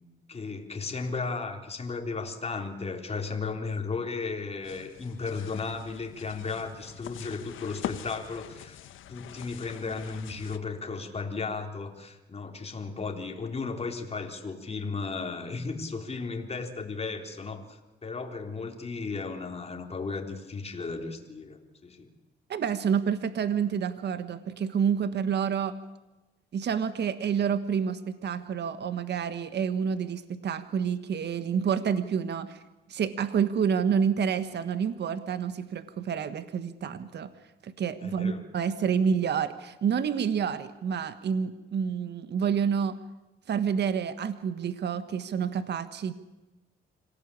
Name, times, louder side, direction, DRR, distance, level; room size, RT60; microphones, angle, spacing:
voice 1, 0.3-8.8 9.1-22.1 38.0-38.4, left 4 dB, 30° left, 4 dB, 3.6 m, -35 dB
sound 1, 4.6-10.6, left 11 dB, 80° left, 1.4 m, -43 dB
voice 2, 22.5-25.8 26.5-32.6 32.9-37.3 37.6-43.0 43.5-46.1, right 7 dB, 60° right, 12 dB, 1.5 m, -28 dB
26.0 x 17.5 x 8.6 m, 1.1 s
cardioid pair, 90°, 20 cm